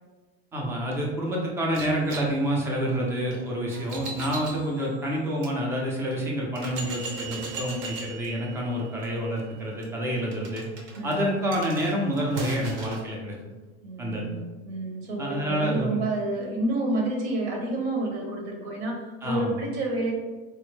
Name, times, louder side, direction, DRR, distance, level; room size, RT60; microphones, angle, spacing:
voice 1, 0.5-10.6 11.0-13.3 14.0-14.4 15.2-16.0 19.2-19.6, equal, 10° right, -2 dB, 0.3 m, -28 dB
sound 1, 1.7-5.5 6.1-6.2 6.6-13.1, right 3 dB, 55° right, 0.7 m, -39 dB
voice 2, 11.0-11.3 13.8-20.1, right 2 dB, 75° right, 0 dB, 1.1 m, -29 dB
4.2 x 2.0 x 3.1 m, 1.2 s
supercardioid pair, 155°, 33 cm